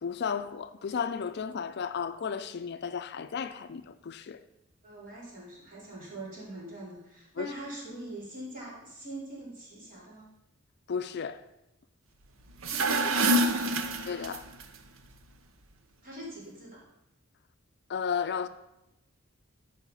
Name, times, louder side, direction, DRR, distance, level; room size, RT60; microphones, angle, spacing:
voice 1, 0.0-4.4 7.4-7.5 10.9-11.4 14.1-14.4 17.9-18.5, left 6 dB, 55° left, 0.4 m, -33 dB
voice 2, 4.8-10.3 12.6-13.8 16.0-16.8, right 1 dB, 45° right, 4.0 m, -42 dB
sound 1, 12.5-14.6, right 1 dB, 70° right, 0.8 m, -27 dB
13.0 x 4.9 x 5.5 m
head